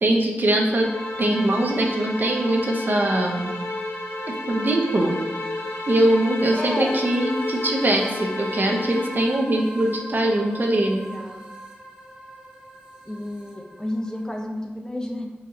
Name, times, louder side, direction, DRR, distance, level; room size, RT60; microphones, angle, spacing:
voice 1, 0.0-0.9 1.2-3.5 4.3-5.2 5.9-11.0, right 1 dB, 55° right, 1 dB, 0.7 m, -22 dB
sound 1, 0.5-9.4, left 2 dB, 80° left, 0.4 m, -32 dB
sound 2, 0.8-14.4, right 1 dB, 20° right, 1.0 m, -39 dB
voice 2, 6.5-7.0 11.1-11.4 13.1-15.3, left 1 dB, 20° left, 1 dB, 0.7 m, -31 dB
4.2 x 3.6 x 2.8 m, 1.2 s
cardioid pair, 50°, 4 cm